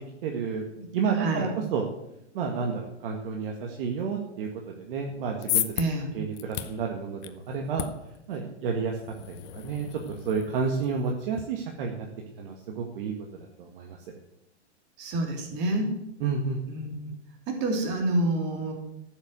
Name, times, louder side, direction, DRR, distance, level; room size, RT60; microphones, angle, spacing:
voice 1, 0.2-0.6 0.9-1.9 2.3-5.7 6.1-7.9 8.3-9.0 9.3-10.0 10.3-12.1 12.4-13.1 13.6-14.0 16.2-16.6, right 5 dB, 50° right, 1 dB, 1.9 m, -30 dB
voice 2, 0.8-1.5 5.8-6.1 15.0-15.9 16.7-17.1 17.5-18.7, right 1 dB, 30° right, 2 dB, 3.3 m, -28 dB
sound 1, 5.1-11.4, left 13 dB, 40° left, 0.9 m, -36 dB
14.0 x 7.2 x 8.0 m, 0.86 s
hypercardioid pair, 155°, 35 cm